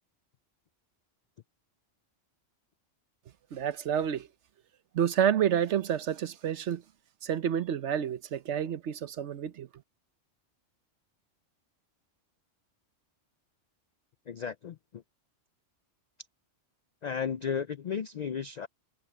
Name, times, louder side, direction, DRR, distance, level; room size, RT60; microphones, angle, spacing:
voice 1, 3.5-4.3 4.9-6.8 7.2-9.7, right 9 dB, 70° right, 1.1 m, -29 dB
voice 2, 14.3-15.0 17.0-18.7, left 7 dB, 65° left, 0.4 m, -34 dB
omnidirectional pair, 1.3 m